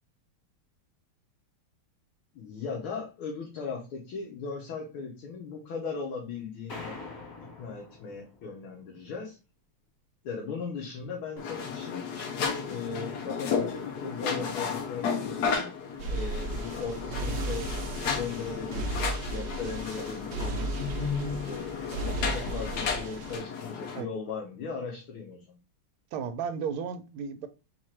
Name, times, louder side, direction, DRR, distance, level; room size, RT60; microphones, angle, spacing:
voice 1, 2.3-7.0 7.4-9.4 10.2-15.7 16.1-17.7 18.1-20.8 21.4-25.6, left 5 dB, 80° left, 1.8 m, -38 dB
sound 1, 6.7-8.7, left 3 dB, 45° left, 1.8 m, -44 dB
sound 2, 11.4-24.0, left 6 dB, 60° left, 1.2 m, -33 dB
sound 3, 16.0-23.4, right 3 dB, 65° right, 1.2 m, -35 dB
voice 2, 26.1-27.5, right 6 dB, 80° right, 1.5 m, -34 dB
4.5 x 2.5 x 4.3 m
omnidirectional pair, 2.3 m